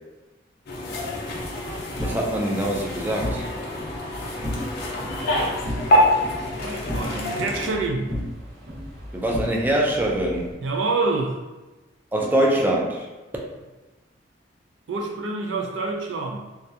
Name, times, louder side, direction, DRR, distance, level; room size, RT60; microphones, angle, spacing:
sound 1, 0.7-7.7, left 1 dB, 60° left, 0.5 m, -26 dB
sound 2, 1.2-10.5, left 1 dB, 55° right, 1.1 m, -35 dB
voice 1, 2.0-3.5 9.1-10.5 12.1-13.0, right 1 dB, 10° right, -2 dB, 0.3 m, -23 dB
voice 2, 6.5-8.1 10.6-11.4 14.9-16.4, right 3 dB, 80° right, 2 dB, 0.4 m, -27 dB
2.3 x 2.2 x 2.7 m, 1.2 s
head